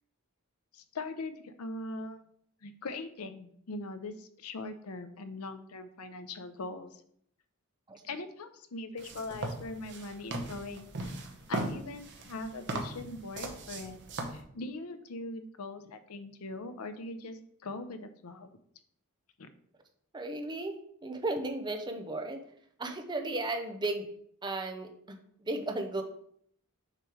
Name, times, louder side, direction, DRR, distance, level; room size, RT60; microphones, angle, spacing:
voice 1, 0.7-2.2 2.6-6.9 8.0-11.1 11.5-14.0 14.3-18.5 19.4-19.5, left 2 dB, 85° left, 9 dB, 0.6 m, -41 dB
sound 1, 9.0-14.4, right 2 dB, 55° right, 0.9 m, -39 dB
voice 2, 20.1-22.4 22.8-24.1 24.4-26.0, right 2 dB, 20° right, 5 dB, 0.7 m, -35 dB
6.7 x 3.1 x 4.8 m, 0.65 s
head